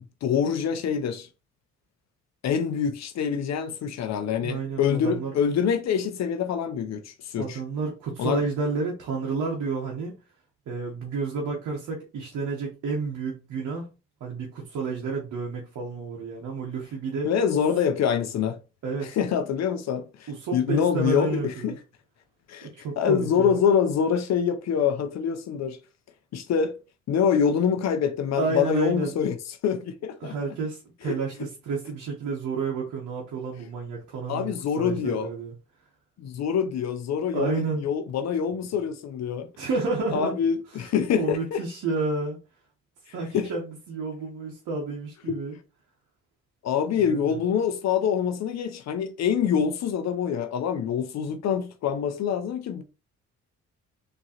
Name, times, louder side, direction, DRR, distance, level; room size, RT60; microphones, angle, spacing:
voice 1, 0.2-1.3 2.4-7.6 8.2-8.4 17.2-18.6 19.0-21.7 22.5-22.7 23.0-25.8 26.3-26.8 27.1-29.3 29.6-30.3 31.1-31.2 34.3-35.3 36.2-39.5 40.1-41.6 43.3-43.5 45.3-45.4 46.6-52.8, left 7 dB, 60° left, 0.6 m, -25 dB
voice 2, 4.4-5.4 7.3-10.1 10.7-13.9 14.2-17.3 18.8-19.2 20.3-21.8 22.6-23.6 28.4-29.1 30.2-35.5 37.3-37.8 39.6-40.3 40.8-40.9 41.2-42.4 43.1-45.5 47.0-47.4, right 4 dB, 75° right, 1.1 m, -30 dB
3.7 x 3.0 x 2.9 m
cardioid pair, 90°, 30 cm